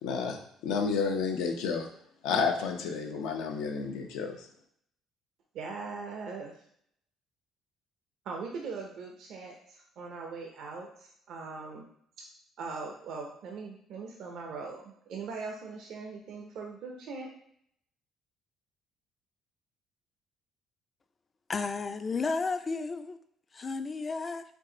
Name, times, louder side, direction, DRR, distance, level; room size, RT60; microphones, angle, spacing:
voice 1, 0.0-1.9 2.2-4.5, left 5 dB, 85° left, 0.6 m, -31 dB
voice 2, 5.5-6.5 8.2-11.9 12.6-17.3, right 4 dB, 70° right, 0.6 m, -40 dB
voice 3, 21.5-23.2 23.5-24.4, left 4 dB, 30° left, 0.4 m, -32 dB
4.6 x 2.5 x 3.8 m
cardioid pair, 95°, 0 cm